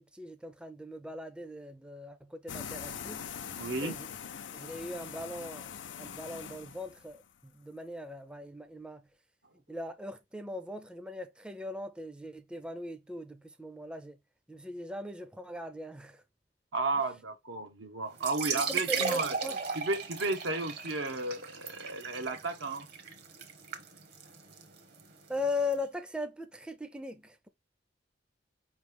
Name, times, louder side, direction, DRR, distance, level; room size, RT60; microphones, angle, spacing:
voice 1, 0.0-3.3 3.8-4.1 4.5-9.1 9.7-14.2 14.5-16.2 18.5-19.6 25.3-27.5, left 2 dB, 5° right, 0.4 m, -39 dB
sound 1, 2.5-7.3, left 8 dB, 80° left, 0.5 m, -42 dB
voice 2, 3.6-4.0 16.7-19.4 19.8-22.9, right 3 dB, 90° right, 0.9 m, -33 dB
sound 2, 18.1-25.7, right 6 dB, 60° right, 1.0 m, -37 dB
4.9 x 3.1 x 3.3 m
head